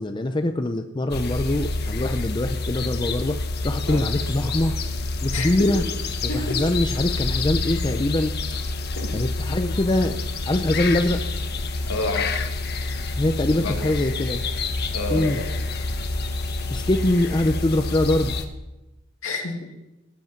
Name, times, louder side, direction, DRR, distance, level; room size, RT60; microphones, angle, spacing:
voice 1, 0.0-3.4 3.6-4.7 5.2-5.8 6.2-8.3 9.1-10.2 10.5-11.2 13.2-14.4 15.1-15.4 16.7-18.4, left 1 dB, 20° left, 7 dB, 0.6 m, -23 dB
sound 1, 1.1-18.5, left 3 dB, 50° left, 1.2 m, -28 dB
voice 2, 6.3-6.6 9.0-9.2 11.9-12.4 13.6-13.9 14.9-15.5 19.2-19.7, left 2 dB, 70° left, 1 dB, 2.6 m, -29 dB
19.5 x 8.2 x 5.9 m, 1.0 s
head